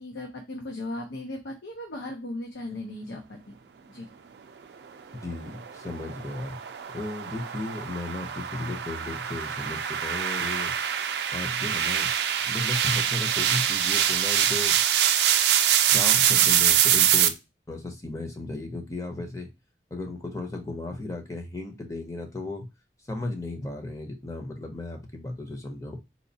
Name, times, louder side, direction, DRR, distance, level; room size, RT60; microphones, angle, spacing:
voice 1, 0.0-3.5 3.9-4.1, left 1 dB, 90° left, 1 dB, 0.7 m, -37 dB
voice 2, 5.1-6.6 6.9-10.7 11.3-12.1 12.5-14.8 15.8-17.3 17.7-19.5 19.9-22.7 23.1-26.0, left 2 dB, 20° left, 3 dB, 0.6 m, -35 dB
sound 1, 5.2-17.3, right 10 dB, 70° right, 0.4 m, -24 dB
4.2 x 2.4 x 2.7 m, 0.24 s
head